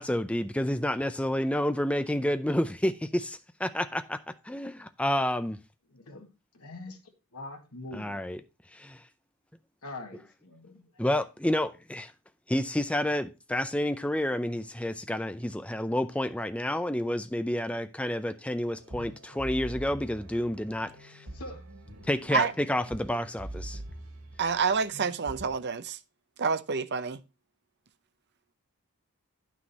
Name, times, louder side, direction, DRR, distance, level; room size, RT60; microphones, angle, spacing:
voice 1, 0.0-5.6 7.9-8.4 8.7-9.0 11.0-12.1 12.5-21.2 22.1-23.8, left 1 dB, 5° left, 0.5 m, -29 dB
voice 2, 5.9-7.0 7.3-8.2 9.8-10.9 21.3-21.6, left 2 dB, 80° left, 1.8 m, -43 dB
sound 1, 18.7-25.5, right 1 dB, 65° right, 2.9 m, -44 dB
voice 3, 24.4-26.0 26.4-27.2, right 5 dB, 50° right, 0.6 m, -28 dB
9.8 x 6.2 x 4.2 m
head